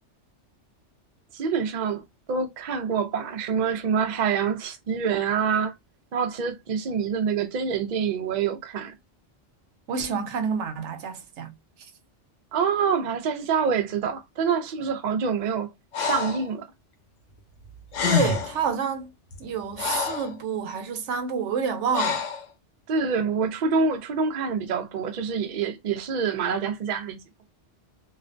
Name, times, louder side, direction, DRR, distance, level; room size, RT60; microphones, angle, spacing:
voice 1, 1.3-5.7 6.1-8.9 12.5-16.7 22.9-27.2, right 6 dB, 55° right, 0.5 m, -26 dB
voice 2, 9.9-11.5 18.0-19.1 19.4-22.2, right 6 dB, 80° right, 0.9 m, -28 dB
Breathing, 15.9-16.5 17.6-17.7 17.9-18.6 19.3-20.3 21.9-22.4, left 6 dB, 90° left, 0.9 m, -26 dB
2.4 x 2.1 x 2.5 m
omnidirectional pair, 1.2 m